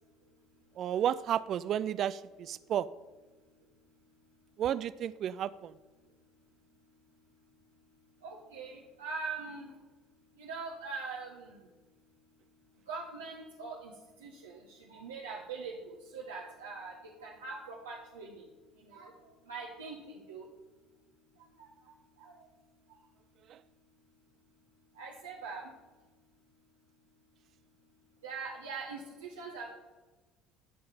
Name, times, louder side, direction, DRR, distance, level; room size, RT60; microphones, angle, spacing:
voice 1, 0.8-2.9 4.6-5.7 23.5-23.6, right 10 dB, 50° right, 17 dB, 0.4 m, -32 dB
voice 2, 8.2-9.7 10.4-11.5 12.9-13.9 14.2-15.7 16.1-16.9 17.2-18.4 18.9-19.1 19.5-20.5 21.6-21.7 22.2-22.4 25.0-25.7 28.2-29.7, right 4 dB, 85° right, -2 dB, 1.3 m, -42 dB
13.0 x 5.7 x 7.0 m, 1.2 s
hypercardioid pair, 60°, 0 cm